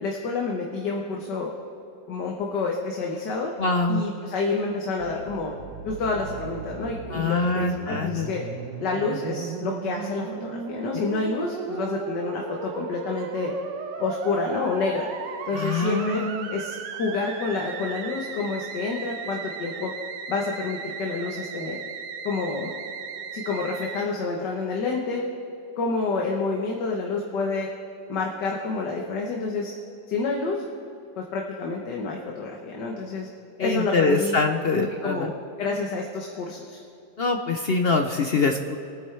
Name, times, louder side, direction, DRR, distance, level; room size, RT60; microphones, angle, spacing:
voice 1, 0.0-1.5 2.1-3.5 3.9-5.5 5.8-8.4 8.8-13.5 14.0-15.1 15.5-16.2 16.5-19.9 20.3-21.8 22.2-22.7 23.3-25.2 25.8-27.7 28.1-29.7 30.1-30.6 31.2-33.3 33.6-34.4 34.7-35.3 35.6-36.8, left 3 dB, 75° left, 0 dB, 1.8 m, -28 dB
voice 2, 3.6-4.0 7.1-8.3 15.5-16.5 33.6-35.3 37.2-38.8, left 3 dB, 60° left, 4 dB, 0.6 m, -24 dB
Musical instrument, 5.0-24.1, right 6 dB, 85° right, 1.5 m, -36 dB
23.5 x 9.5 x 3.4 m, 2.8 s
omnidirectional pair, 1.9 m